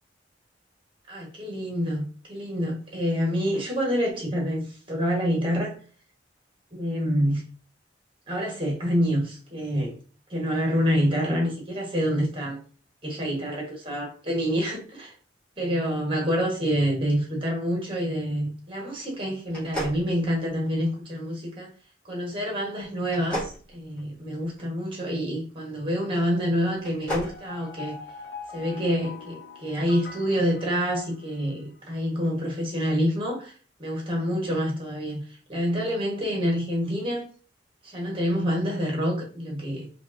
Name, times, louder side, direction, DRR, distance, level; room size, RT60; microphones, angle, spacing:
voice 1, 1.1-5.7 6.7-7.4 8.3-9.9 10.3-12.6 13.0-15.1 15.6-21.7 22.0-28.0 28.5-33.5 33.8-35.2 35.5-37.3 37.8-39.9, equal, 25° right, 1.2 m, -27 dB
sound 1, 19.5-20.9 23.0-24.6 26.7-27.4, equal, 5° left, 1.7 m, -34 dB
sound 2, 27.2-31.5, left 5 dB, 60° left, 0.6 m, -42 dB
5.0 x 2.4 x 2.6 m
head